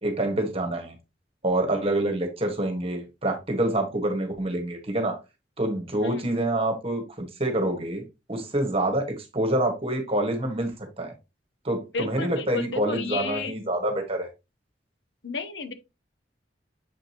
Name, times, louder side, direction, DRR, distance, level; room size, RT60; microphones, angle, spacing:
voice 1, 0.0-1.0 1.4-5.2 5.6-8.0 8.3-9.0 9.3-10.7 11.0-11.1 11.6-14.3, right 1 dB, 35° right, 1.6 m, -26 dB
voice 2, 11.9-13.5 15.2-15.7, left 4 dB, 85° left, 0.9 m, -32 dB
7.3 x 5.1 x 3.0 m
head